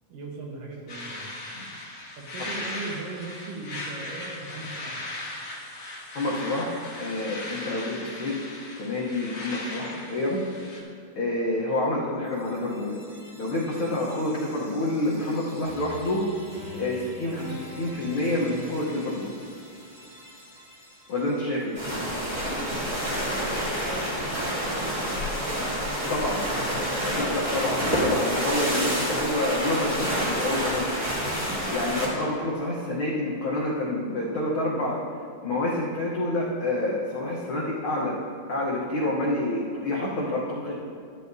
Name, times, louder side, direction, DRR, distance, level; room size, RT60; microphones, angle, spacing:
voice 1, 0.1-1.3 2.2-4.9 22.6-26.9, right 3 dB, 80° right, -1 dB, 2.8 m, -40 dB
sound 1, 0.9-10.8, left 2 dB, 55° left, 1.0 m, -38 dB
voice 2, 6.1-8.3 8.8-10.4 11.2-13.0 13.4-16.2 16.7-19.3 21.1-21.8 26.1-26.4 27.0-30.9 31.7-35.0 35.4-38.1 38.5-40.7, left 1 dB, 75° left, -5 dB, 1.2 m, -28 dB
sound 2, 12.2-22.2, left 1 dB, 15° right, 1.6 m, -44 dB
sound 3, 21.7-32.1, equal, 35° right, 1.9 m, -28 dB
12.0 x 9.5 x 2.7 m, 2.2 s
omnidirectional pair, 3.8 m